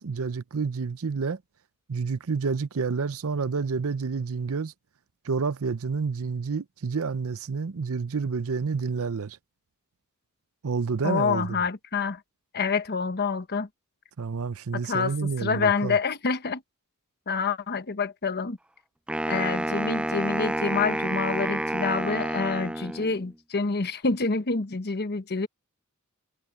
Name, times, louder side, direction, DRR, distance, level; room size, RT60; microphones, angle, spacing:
voice 1, 0.0-1.4 1.9-4.7 5.2-9.4 10.6-11.6 14.2-16.0, right 5 dB, 70° right, 0.6 m, -29 dB
voice 2, 11.0-12.2 12.5-13.7 14.7-16.6 17.3-18.6 19.3-25.5, left 4 dB, 50° left, 1.1 m, -27 dB
Wind instrument woodwind instrument, 19.1-23.3, right 1 dB, 5° right, 0.4 m, -29 dB
head